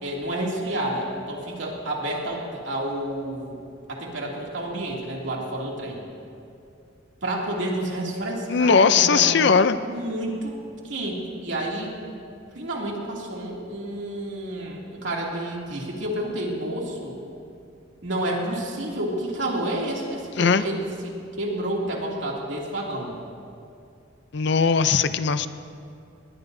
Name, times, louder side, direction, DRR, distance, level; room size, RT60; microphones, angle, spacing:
voice 1, 0.0-3.6 3.9-6.1 7.2-9.4 9.8-10.6 10.8-11.9 12.5-17.2 18.0-23.2, right 1 dB, 70° right, -2 dB, 2.6 m, -30 dB
voice 2, 8.5-9.8 20.4-20.6 24.3-25.5, left 5 dB, 60° left, 12 dB, 0.5 m, -19 dB
20.0 x 20.0 x 2.7 m, 2.5 s
head